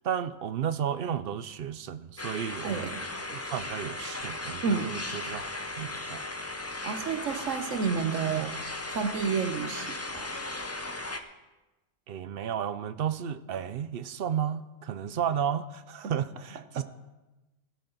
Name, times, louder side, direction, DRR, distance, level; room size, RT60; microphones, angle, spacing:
voice 1, 0.0-3.0 3.3-6.2 12.1-16.8, right 8 dB, 60° right, 0.7 m, -33 dB
sound 1, 2.2-11.2, left 2 dB, 15° left, 0.5 m, -37 dB
voice 2, 2.6-3.1 4.6-5.0 6.8-10.4 16.7-16.8, right 6 dB, 80° right, 1.3 m, -31 dB
16.0 x 12.0 x 4.0 m
omnidirectional pair, 1.3 m